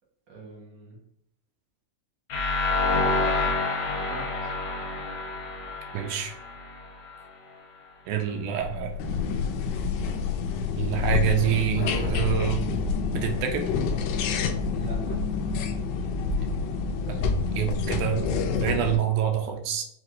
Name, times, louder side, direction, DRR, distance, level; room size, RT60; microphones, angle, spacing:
voice 1, 0.3-1.0 3.1-3.3 4.1-4.6 14.7-15.2 16.0-16.1 16.4-16.5, right 2 dB, 55° right, -3 dB, 1.3 m, -42 dB
sound 1, 2.3-7.2, left 3 dB, 70° left, 2.3 m, -28 dB
voice 2, 5.9-6.3 8.1-8.9 10.8-12.6 13.1-13.7 17.1-17.2 17.6-19.8, right 10 dB, 80° right, 4 dB, 2.0 m, -27 dB
sound 2, 8.6-14.9, left 5 dB, 45° left, 1.6 m, -35 dB
sound 3, 9.0-19.0, left 4 dB, 90° left, 2.2 m, -28 dB
5.9 x 2.9 x 2.6 m, 0.74 s
omnidirectional pair, 3.7 m